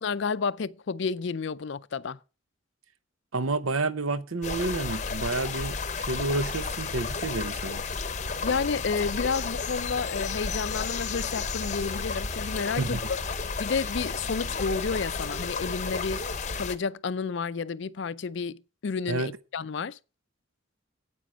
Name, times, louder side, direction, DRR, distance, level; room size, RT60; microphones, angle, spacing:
voice 1, 0.0-2.2 8.4-13.2 13.6-16.2 16.6-20.0, left 5 dB, 55° left, 0.4 m, -31 dB
voice 2, 3.3-7.8 12.8-13.1 19.1-19.3, right 3 dB, 80° right, 0.9 m, -30 dB
sound 1, 4.4-16.8, left 4 dB, 35° left, 0.8 m, -32 dB
9.2 x 8.6 x 6.1 m
head